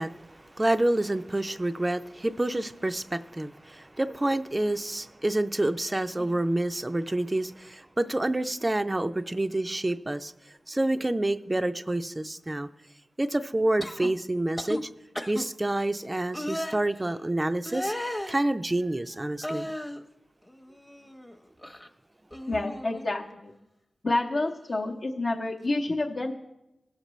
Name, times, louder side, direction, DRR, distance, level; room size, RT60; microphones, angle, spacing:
voice 1, 0.0-10.3 10.7-12.7 13.2-14.9 15.3-17.9 18.3-19.7, right 1 dB, 20° right, 0.4 m, -28 dB
sound 1, 13.8-14.1 14.6-14.8 15.1-15.4 16.3-16.8 17.6-18.4 19.4-20.0 20.5-21.3 21.6-21.9 22.3-23.1 24.4-24.5, left 1 dB, 10° left, 0.8 m, -35 dB
voice 2, 22.5-23.5 24.0-26.3, left 2 dB, 55° left, 0.8 m, -29 dB
18.5 x 6.6 x 3.1 m
cardioid pair, 65°, 0 cm